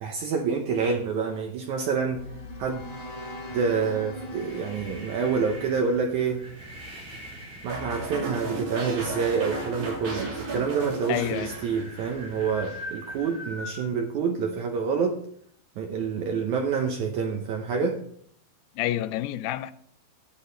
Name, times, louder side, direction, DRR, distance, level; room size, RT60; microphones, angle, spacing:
voice 1, 0.0-2.3 2.6-2.8 3.5-6.4 7.6-15.2 15.8-18.0, right 5 dB, 85° right, 1.7 m, -27 dB
sound 1, 1.7-6.9, left 1 dB, 45° left, 3.2 m, -41 dB
sound 2, 4.1-13.8, equal, 15° right, 3.8 m, -43 dB
sound 3, 7.7-12.1 12.4-12.8, right 2 dB, 40° right, 3.7 m, -34 dB
voice 2, 11.1-11.5 18.8-19.7, left 13 dB, 85° left, 2.6 m, -28 dB
13.0 x 8.4 x 3.9 m
omnidirectional pair, 4.7 m